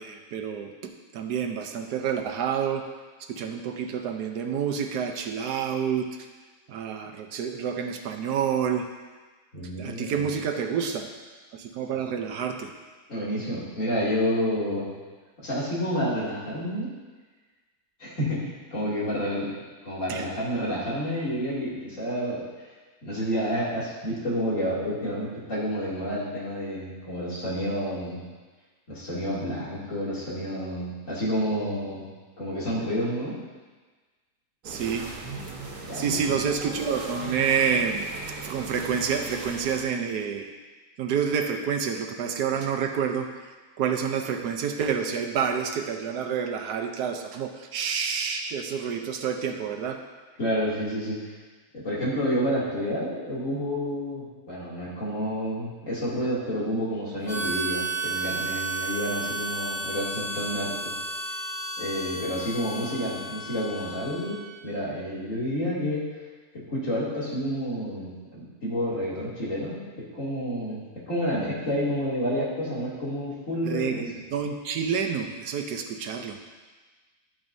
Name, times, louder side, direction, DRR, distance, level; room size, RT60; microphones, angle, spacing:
voice 1, 0.0-2.9 3.2-6.3 6.7-8.9 9.8-11.1 11.5-12.7 20.1-20.2 34.6-35.1 35.9-38.1 38.4-40.5 41.0-50.0 73.6-76.4, right 7 dB, 90° right, 4 dB, 1.4 m, -28 dB
voice 2, 9.5-10.2 13.1-14.9 15.4-16.9 18.0-19.5 19.8-22.4 23.0-28.2 28.9-32.1 32.4-33.4 35.8-36.4 50.4-51.2 51.7-60.7 61.8-64.4 64.6-66.1 66.7-69.8 70.1-70.8 71.1-74.0, equal, 55° left, -8 dB, 3.1 m, -29 dB
sound 1, 34.6-39.8, right 4 dB, 70° right, 1.8 m, -38 dB
Harmonica, 57.3-64.5, right 2 dB, 70° left, 4.0 m, -33 dB
12.5 x 8.9 x 2.7 m, 1.3 s
omnidirectional pair, 1.7 m